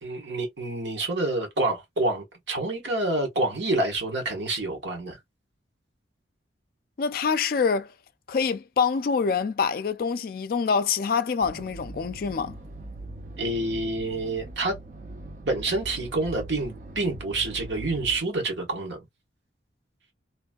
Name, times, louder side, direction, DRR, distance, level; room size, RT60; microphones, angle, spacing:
voice 1, 0.0-5.2 13.4-14.8 15.5-19.0, right 2 dB, 70° right, 1.3 m, -28 dB
voice 2, 7.0-7.9 8.3-12.6, left 5 dB, 50° left, 0.3 m, -25 dB
sound 1, 11.4-18.2, right 2 dB, 45° right, 0.5 m, -41 dB
3.0 x 2.6 x 2.3 m
head